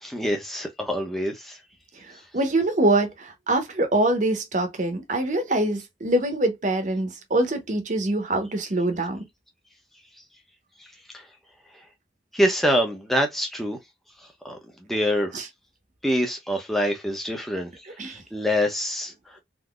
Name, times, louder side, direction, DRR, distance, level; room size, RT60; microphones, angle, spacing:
voice 1, 0.0-1.6 2.1-2.2 11.1-11.3 12.3-13.8 14.4-15.3 16.0-19.4, equal, ahead, 0.7 m, -26 dB
voice 2, 2.3-9.2 15.3-15.4 18.0-18.2, right 1 dB, 45° right, 0.9 m, -24 dB
3.8 x 2.7 x 2.3 m
head